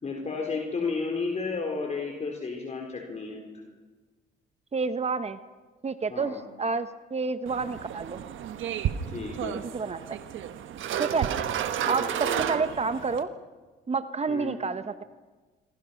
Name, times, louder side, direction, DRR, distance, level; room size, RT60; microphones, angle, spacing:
voice 1, 0.0-3.4 6.1-6.4 9.1-9.6 11.8-12.4 14.3-14.6, left 4 dB, 35° left, 1 dB, 4.1 m, -32 dB
voice 2, 4.7-5.4 5.8-8.2 9.7-10.2 11.0-11.3 11.9-13.3 13.9-15.0, right 4 dB, 30° right, 11 dB, 1.0 m, -29 dB
sound 1, 7.5-13.2, right 10 dB, 80° right, 1.3 m, -32 dB
26.5 x 24.5 x 5.8 m, 1.3 s
cardioid pair, 90°, 20 cm